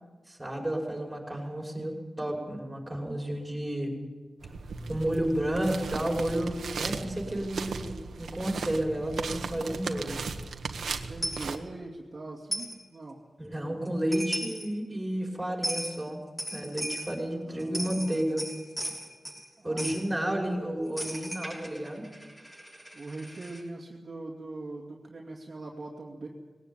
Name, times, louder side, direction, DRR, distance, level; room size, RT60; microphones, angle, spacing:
voice 1, 0.3-4.0 4.9-10.2 13.4-16.2 16.5-18.4 19.6-22.1, right 1 dB, 10° right, 0 dB, 5.8 m, -31 dB
sound 1, 4.4-11.6, right 4 dB, 90° right, 1.6 m, -37 dB
voice 2, 10.9-13.2 17.3-18.3 19.6-20.6 21.0-21.2 22.9-26.3, right 2 dB, 40° right, -2 dB, 2.5 m, -42 dB
Coin (dropping), 11.2-11.5 12.5-12.8 13.9-14.0 14.1-14.7 15.6-15.9 16.4-17.1 17.6-19.4 19.8-20.0 21.0-23.6, equal, 10° left, 6.1 m, -36 dB
20.0 x 18.0 x 8.9 m, 1.4 s
wide cardioid pair, 115°, 0 cm